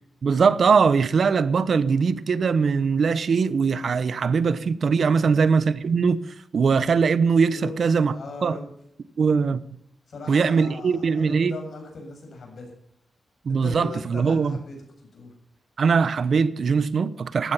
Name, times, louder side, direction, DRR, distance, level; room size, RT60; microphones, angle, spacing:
voice 1, 0.2-6.2 6.5-8.1 8.4-8.6 9.2-9.6 10.3-11.6 13.4-14.6 15.8-17.5, right 5 dB, 60° right, 0.9 m, -21 dB
voice 2, 5.0-5.4 7.5-8.7 10.1-12.7 13.5-15.3, left 3 dB, 60° left, 7.2 m, -39 dB
15.5 x 12.0 x 5.7 m
cardioid pair, 80°, 0 cm